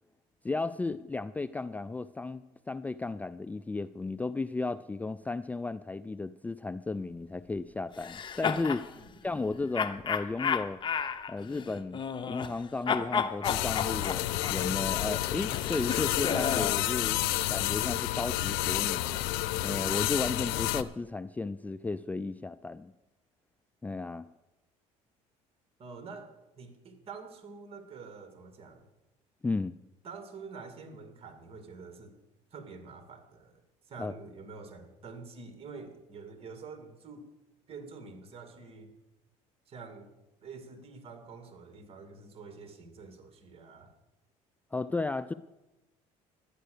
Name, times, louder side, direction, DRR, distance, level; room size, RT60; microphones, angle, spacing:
voice 1, 0.4-8.9 9.2-10.8 11.3-12.0 12.3-17.2 17.5-19.2 19.6-22.9 23.8-24.3 29.4-29.8 34.0-34.1 44.7-45.3, left 3 dB, 10° left, 13 dB, 0.3 m, -34 dB
sound 1, 8.0-8.9 9.7-12.6 12.9-16.8, left 6 dB, 35° left, 0.9 m, -32 dB
sound 2, 13.4-20.8, left 16 dB, 85° left, 0.6 m, -30 dB
voice 2, 25.8-26.3 26.6-28.8 30.0-32.2 32.5-33.6 33.9-37.3 37.7-38.9 39.7-40.1 40.4-43.9, right 4 dB, 45° right, 8 dB, 2.3 m, -47 dB
11.5 x 10.0 x 6.6 m, 1.0 s
supercardioid pair, 95°, 14 cm